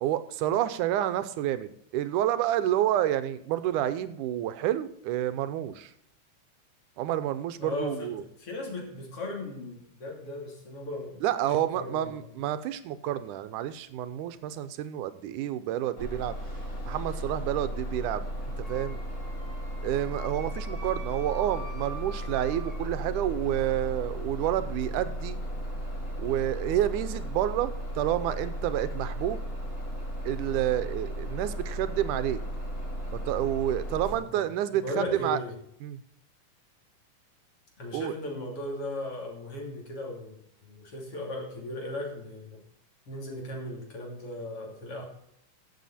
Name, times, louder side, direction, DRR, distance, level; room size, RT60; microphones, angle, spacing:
voice 1, 0.0-5.9 7.0-8.2 11.2-16.4 16.9-18.2 18.7-19.0 19.8-25.4 26.2-29.4 30.3-32.4 33.3-35.4 35.8-36.0 37.9-38.1, right 12 dB, 90° right, 12 dB, 2.3 m, -29 dB
voice 2, 7.6-12.2 34.1-35.6 37.8-40.4 40.6-42.6 43.1-45.0, left 1 dB, 50° left, 0 dB, 3.6 m, -37 dB
Bus, 16.0-34.1, equal, 30° left, 3.8 m, -35 dB
Wind instrument woodwind instrument, 18.6-22.8, equal, 15° right, 5.8 m, -46 dB
14.5 x 7.5 x 4.2 m, 0.74 s
omnidirectional pair, 3.5 m